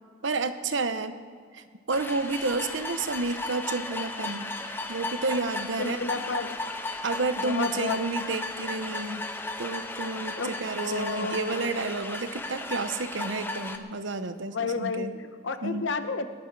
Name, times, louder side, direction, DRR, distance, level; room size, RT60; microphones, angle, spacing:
voice 1, 0.2-1.1 1.5-4.5 4.9-6.0 7.0-9.2 9.6-15.1 15.6-15.8, right 3 dB, 70° right, 10 dB, 0.9 m, -30 dB
sound 1, 1.9-13.8, left 2 dB, 10° left, 0.7 m, -35 dB
voice 2, 5.8-6.6 7.4-8.0 10.4-11.8 14.5-16.3, left 4 dB, 70° left, 9 dB, 0.9 m, -31 dB
20.0 x 11.5 x 4.8 m, 2.1 s
head